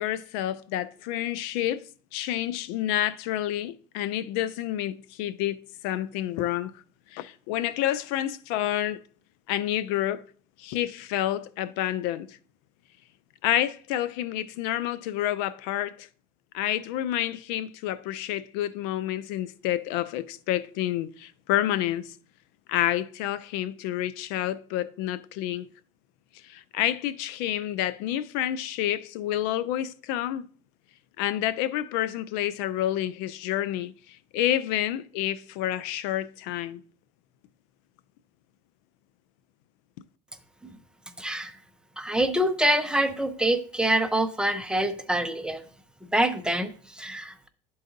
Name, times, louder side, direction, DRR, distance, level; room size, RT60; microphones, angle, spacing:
voice 1, 0.0-5.6 5.8-6.7 7.1-9.0 9.5-10.2 10.6-12.4 13.4-16.1 16.5-22.1 22.7-25.7 26.4-30.5 31.2-36.8, left 12 dB, 75° left, 0.4 m, -29 dB
voice 2, 41.2-41.5 42.0-45.6 46.1-47.5, right 1 dB, 5° right, 0.6 m, -25 dB
11.5 x 3.9 x 2.6 m
supercardioid pair, 115°, 18 cm